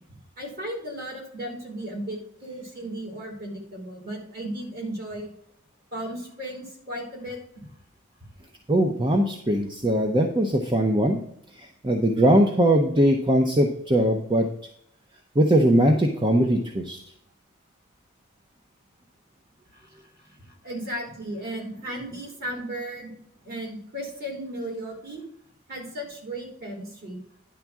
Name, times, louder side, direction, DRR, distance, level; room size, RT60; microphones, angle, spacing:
voice 1, 0.1-5.3 5.9-7.7 19.7-19.9 20.6-23.1 23.4-25.2 25.7-27.2, right 1 dB, 45° right, -1 dB, 3.4 m, -35 dB
voice 2, 8.7-11.2 11.6-14.5 15.3-17.0, right 1 dB, 20° right, 3 dB, 0.7 m, -21 dB
10.5 x 3.5 x 7.3 m, 0.70 s
head